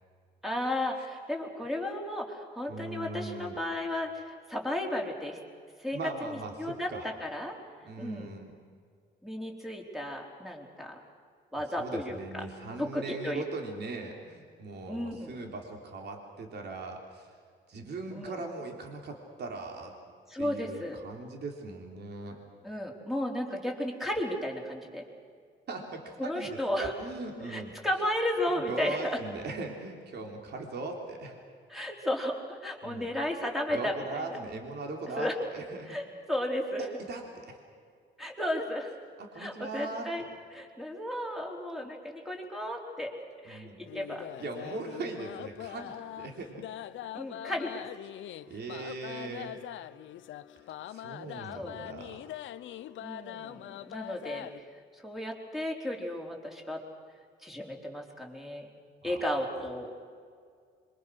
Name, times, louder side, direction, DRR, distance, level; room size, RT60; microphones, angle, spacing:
voice 1, 0.4-5.4 5.8-6.9 7.2-7.6 8.0-8.3 9.2-11.0 11.5-12.4 12.8-13.4 14.9-15.4 18.1-18.4 20.3-21.0 22.6-25.0 26.2-26.9 27.4-29.2 31.7-34.3 35.2-35.3 35.9-36.8 38.2-38.9 39.3-40.2 40.5-43.1 43.4-43.7 43.9-44.2 47.1-47.9 51.5-51.8 53.0-54.5 55.0-56.8 57.4-58.7 59.0-60.0, left 1 dB, ahead, 0 dB, 4.4 m, -34 dB
voice 2, 2.7-3.6 5.9-7.1 7.9-8.5 11.8-17.3 17.7-19.9 20.4-22.4 25.7-27.8 28.5-31.4 32.8-33.1 33.7-36.0 36.8-37.6 39.2-40.3 43.5-43.8 44.4-46.6 48.5-49.6 50.9-52.3 59.0-59.2, right 3 dB, 55° right, 2 dB, 3.5 m, -40 dB
sound 1, 43.9-54.6, left 12 dB, 75° left, 0.8 m, -43 dB
26.0 x 24.0 x 6.4 m, 2.1 s
cardioid pair, 90°, 20 cm